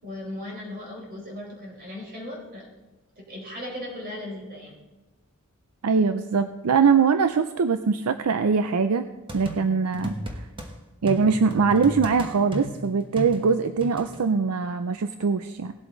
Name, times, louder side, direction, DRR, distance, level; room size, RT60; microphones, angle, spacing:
voice 1, 0.0-2.7 3.2-4.8, left 1 dB, 45° right, -2 dB, 4.7 m, -37 dB
voice 2, 5.8-9.0 9.3-10.5 11.0-15.7, right 5 dB, 75° right, 9 dB, 0.5 m, -22 dB
sound 1, 9.3-10.7 11.1-14.2, equal, 25° right, 1.2 m, -35 dB
18.5 x 7.9 x 3.9 m, 1.1 s
head